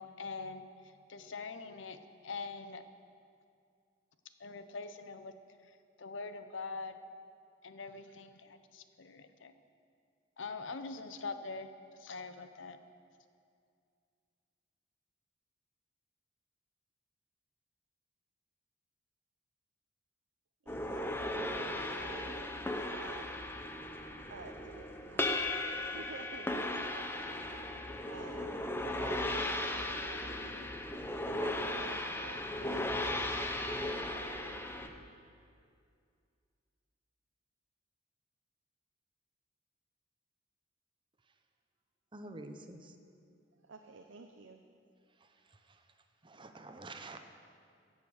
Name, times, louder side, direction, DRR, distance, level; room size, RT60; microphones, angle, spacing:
voice 1, 0.0-2.9 4.4-5.3 5.6-7.0 7.6-9.5 10.4-12.8, left 4 dB, 75° left, 10 dB, 0.8 m, -44 dB
sound 1, 20.7-34.9, left 1 dB, 10° left, 0.8 m, -37 dB
voice 2, 20.7-22.3 22.9-23.4 24.3-27.5 28.1-28.5 28.8-30.6 31.2-34.4 43.6-44.6, right 3 dB, 80° right, 4 dB, 0.7 m, -52 dB
voice 3, 42.1-43.0 45.2-45.8 46.2-47.2, right 2 dB, 25° right, 7 dB, 0.8 m, -49 dB
16.0 x 7.5 x 6.4 m, 2.3 s
head